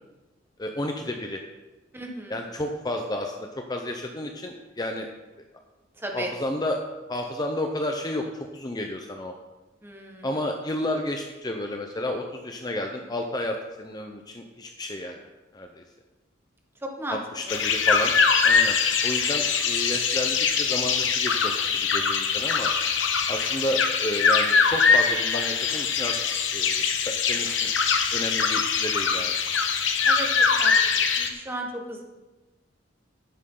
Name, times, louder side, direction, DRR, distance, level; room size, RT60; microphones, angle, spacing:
voice 1, 0.6-1.4 2.3-5.1 6.1-6.8 7.1-9.3 10.2-15.2 15.5-15.8 17.1-18.1 18.4-18.8 19.0-22.7 23.3-26.1 26.5-26.9 27.3-27.7 28.1-29.4, left 1 dB, 20° left, 3 dB, 0.7 m, -31 dB
voice 2, 1.9-2.4 6.0-6.3 9.8-10.3 16.8-17.2 17.5-17.6 30.0-30.3 30.6-30.8 31.2-32.0, right 1 dB, 10° right, 1 dB, 1.5 m, -34 dB
sound 1, 17.5-31.3, left 5 dB, 70° left, 1.1 m, -23 dB
12.0 x 10.0 x 3.9 m, 1.1 s
head